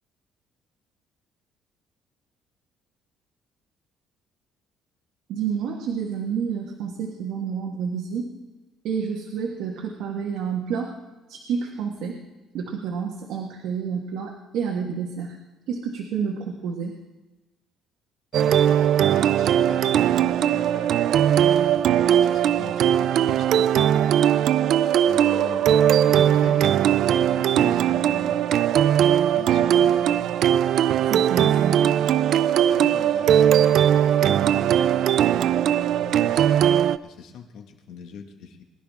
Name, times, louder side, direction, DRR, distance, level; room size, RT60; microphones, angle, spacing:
voice 1, 5.3-8.3 8.8-10.9 11.3-12.2 12.5-15.4 15.7-17.0 26.1-26.3 31.1-31.9, right 6 dB, 80° right, 0 dB, 1.5 m, -29 dB
voice 2, 18.3-20.9 21.4-23.9 25.0-25.7 26.1-28.4 29.3-30.3 32.5-34.8 35.7-38.6, left 7 dB, 75° left, 4 dB, 1.7 m, -41 dB
sound 1, 18.3-37.0, right 10 dB, 60° right, 0.4 m, -19 dB
20.5 x 11.5 x 3.6 m, 1.1 s
cardioid pair, 145°, 0 cm